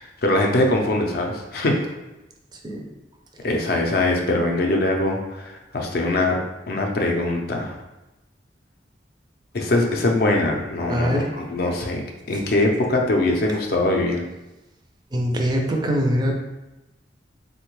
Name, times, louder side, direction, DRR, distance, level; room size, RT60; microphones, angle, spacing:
voice 1, 0.0-1.8 3.4-6.4 6.7-7.7 9.5-14.2, left 2 dB, 55° left, 1 dB, 0.4 m, -22 dB
voice 2, 10.9-11.3 15.1-16.3, equal, 25° right, 2 dB, 0.4 m, -22 dB
3.4 x 2.1 x 3.0 m, 0.98 s
head